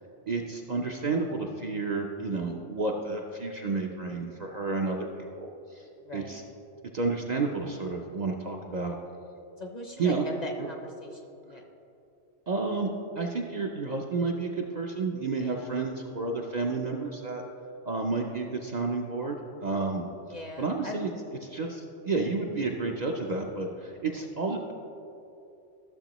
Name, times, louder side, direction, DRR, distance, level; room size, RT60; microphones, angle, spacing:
voice 1, 0.3-5.8 6.1-6.4 6.9-9.0 10.0-10.2 12.5-12.9 13.1-17.4 17.8-20.1 20.6-21.1 21.4-24.7, right 3 dB, 50° right, 0 dB, 0.6 m, -31 dB
voice 2, 6.0-6.4 9.6-11.7 15.3-15.7 20.3-21.0, left 1 dB, 40° left, 2 dB, 0.7 m, -40 dB
13.0 x 6.9 x 3.0 m, 2.8 s
omnidirectional pair, 1.2 m